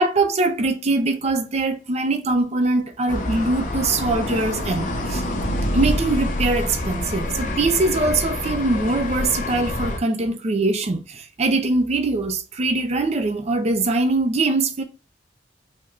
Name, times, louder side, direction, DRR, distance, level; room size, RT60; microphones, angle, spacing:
voice 1, 0.0-5.2 5.7-14.8, right 2 dB, 35° right, 0.5 m, -22 dB
sound 1, 3.1-10.0, left 1 dB, 45° left, 0.7 m, -26 dB
3.6 x 2.1 x 3.1 m
head